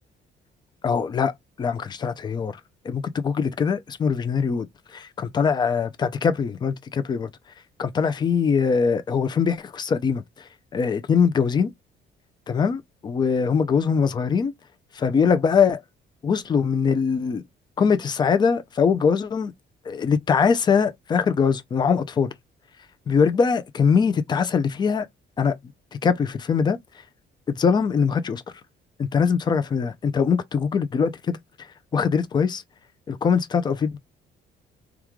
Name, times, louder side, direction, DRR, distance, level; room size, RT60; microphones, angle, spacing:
voice 1, 0.8-1.3 1.6-2.6 2.8-4.7 4.9-7.3 7.8-11.7 12.5-14.5 14.9-15.8 16.2-17.4 17.8-19.5 19.9-22.3 23.1-25.1 25.4-25.6 26.0-26.8 27.5-28.4 29.0-31.4 31.9-32.6 33.1-34.0, left 6 dB, 25° left, 0.4 m, -22 dB
3.0 x 2.3 x 3.5 m
cardioid pair, 175°, 19 cm